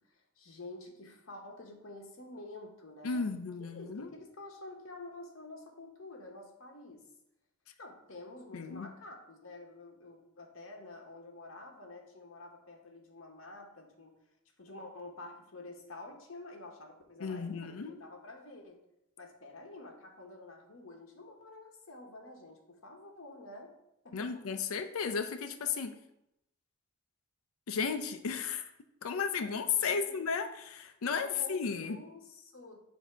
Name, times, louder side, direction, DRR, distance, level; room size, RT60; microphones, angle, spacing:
voice 1, 0.4-3.2 3.6-7.0 7.8-14.1 14.6-18.8 19.2-23.7 24.0-24.6 29.8-30.2 31.1-32.8, left 2 dB, 70° left, 1 dB, 1.1 m, -49 dB
voice 2, 3.0-4.1 8.5-8.9 17.2-18.0 24.1-26.0 27.7-28.7 29.0-32.0, left 5 dB, 85° left, 9 dB, 0.5 m, -34 dB
7.0 x 2.8 x 5.6 m, 0.84 s
head